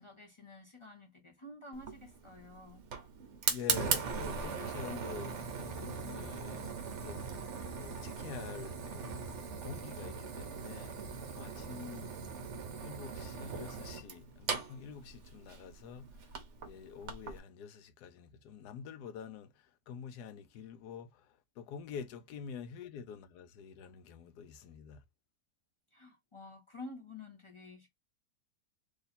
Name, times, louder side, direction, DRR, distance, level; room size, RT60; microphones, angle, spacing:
voice 1, 0.0-2.8 25.9-27.9, left 2 dB, 35° left, 0.5 m, -50 dB
Fire, 1.7-17.4, right 6 dB, 55° right, 0.8 m, -39 dB
voice 2, 3.4-6.7 7.0-9.2 9.6-11.0 11.3-12.1 12.8-16.3 16.6-25.0, left 7 dB, 70° left, 1.2 m, -47 dB
3.2 x 2.7 x 4.1 m
omnidirectional pair, 1.9 m